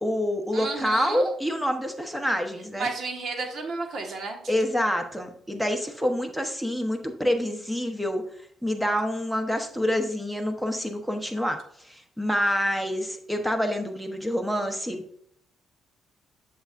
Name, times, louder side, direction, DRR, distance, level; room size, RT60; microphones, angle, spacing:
voice 1, 0.0-2.9 4.5-8.2 8.6-15.2, equal, 5° right, 5 dB, 1.1 m, -27 dB
voice 2, 0.5-1.3 2.8-4.4, right 3 dB, 55° right, 3 dB, 1.6 m, -32 dB
8.0 x 6.4 x 2.6 m, 0.65 s
cardioid pair, 90°, 0 cm